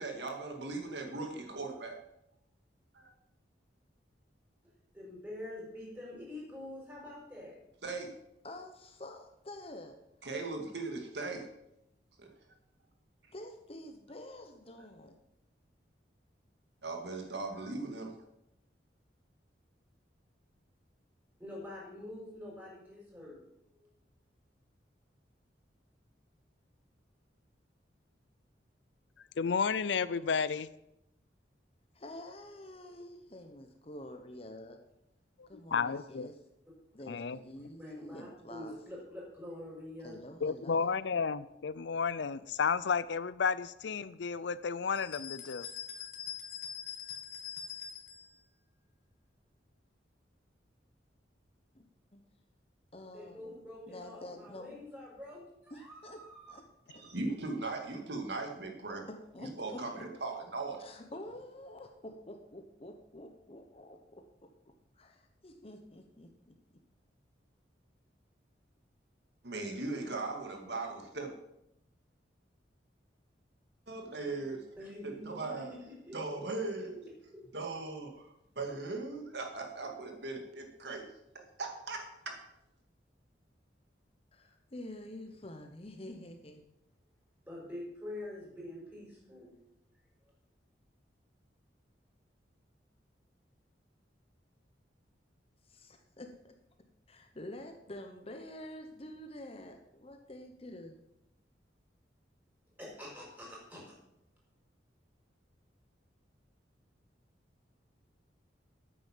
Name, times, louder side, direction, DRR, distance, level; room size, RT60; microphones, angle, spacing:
voice 1, 0.0-1.9 2.9-3.1 7.8-8.1 10.2-11.5 12.2-12.3 16.8-18.1 56.9-59.1 59.4-60.8 69.4-71.3 73.9-74.6 75.0-75.7 76.1-77.0 77.5-78.3 78.6-81.1 81.6-82.3, right 3 dB, 70° right, 3 dB, 2.2 m, -38 dB
voice 2, 4.9-7.6 21.4-23.4 23.8-23.9 37.8-40.2 53.1-56.6 74.8-76.2 76.5-76.6 77.3-77.4 87.5-89.5 102.8-103.8, left 1 dB, 10° right, -4 dB, 5.9 m, -46 dB
voice 3, 8.4-10.0 13.3-15.2 31.9-34.8 35.5-36.4 36.9-38.7 40.0-41.0 51.7-51.8 52.1-52.2 52.9-54.8 55.7-56.9 59.1-60.1 60.8-64.2 65.0-66.5 84.3-86.7 95.7-96.5 97.1-101.0, left 1 dB, 35° left, 5 dB, 1.1 m, -48 dB
voice 4, 29.4-30.7 35.4-36.3 37.1-37.4 40.4-45.7, left 5 dB, 75° left, 16 dB, 0.5 m, -32 dB
sound 1, 44.9-48.3, left 8 dB, 55° left, 2.2 m, -43 dB
9.3 x 9.3 x 7.4 m, 0.83 s
head